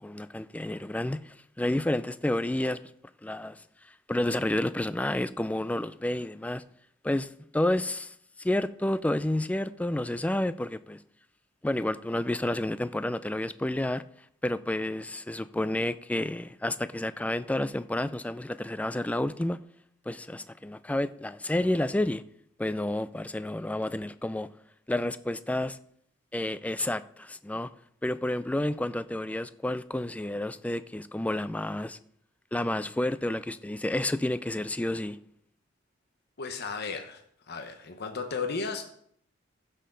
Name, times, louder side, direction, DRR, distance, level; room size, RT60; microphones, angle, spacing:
voice 1, 0.0-2.8 3.2-3.6 4.1-6.6 7.0-8.1 8.4-11.0 11.6-14.0 14.4-19.6 20.1-22.2 22.6-24.5 24.9-25.8 26.3-27.7 28.0-32.0 32.5-35.2, left 1 dB, 5° left, 0.3 m, -30 dB
voice 2, 36.4-38.8, left 4 dB, 55° left, 1.0 m, -34 dB
15.0 x 6.5 x 3.8 m
head